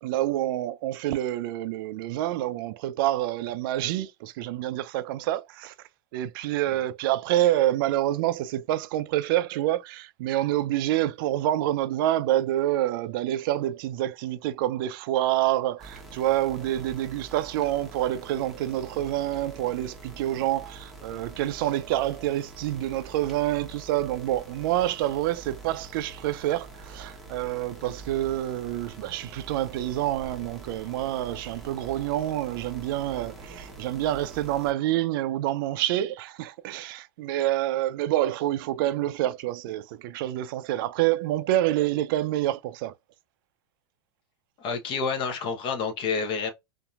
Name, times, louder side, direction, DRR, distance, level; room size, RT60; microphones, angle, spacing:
voice 1, 0.0-5.7 6.1-42.9, right 14 dB, 55° right, 0.4 m, -27 dB
sound 1, 15.8-34.7, right 3 dB, ahead, 0.9 m, -45 dB
voice 2, 44.6-46.5, left 5 dB, 40° left, 0.8 m, -29 dB
2.7 x 2.5 x 2.3 m
hypercardioid pair, 105°, 13 cm